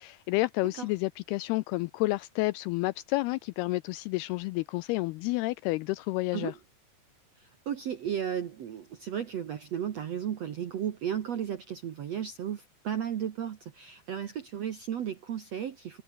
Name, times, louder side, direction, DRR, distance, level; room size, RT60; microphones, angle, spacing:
voice 1, 0.0-6.5, left 21 dB, 85° left, 2.3 m, -30 dB
voice 2, 7.4-16.0, right 9 dB, 65° right, 1.6 m, -34 dB
omnidirectional pair, 4.9 m